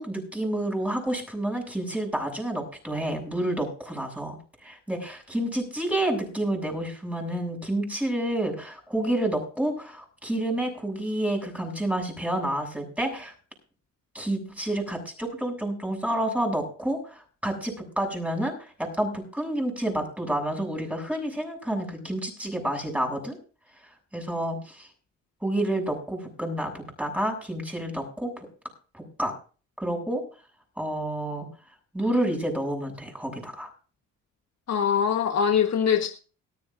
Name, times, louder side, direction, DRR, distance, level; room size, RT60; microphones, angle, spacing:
voice 1, 0.0-4.4 4.6-13.3 14.1-18.7 19.0-23.4 24.1-24.9 25.4-28.5 28.9-29.3 29.8-30.2 30.8-31.5 31.9-33.7, right 1 dB, 5° right, 7.2 m, -29 dB
voice 2, 34.7-36.1, left 7 dB, 55° left, 1.4 m, -22 dB
19.0 x 13.5 x 2.6 m
cardioid pair, 90°, 30 cm